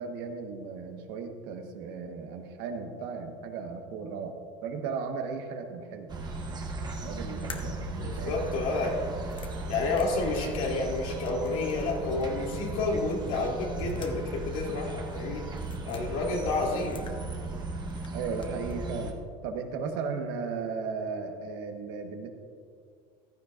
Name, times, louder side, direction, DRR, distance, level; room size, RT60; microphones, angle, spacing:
voice 1, 0.0-4.4 4.6-6.1 6.4-6.7 7.0-8.6 18.1-19.1 19.4-22.3, right 5 dB, 70° right, 4 dB, 1.3 m, -36 dB
sound 1, 6.1-19.1, right 2 dB, 25° right, 1.2 m, -36 dB
sound 2, 7.5-11.9 12.2-12.3 13.5-14.5 14.7-14.8 15.5-16.0 16.6-17.6 17.9-18.8, left 5 dB, 30° left, 1.0 m, -49 dB
voice 2, 8.0-9.0 9.7-15.5 15.9-17.1, left 3 dB, 80° left, -2 dB, 2.8 m, -30 dB
15.0 x 13.0 x 2.5 m, 2.2 s
supercardioid pair, 130°, 17 cm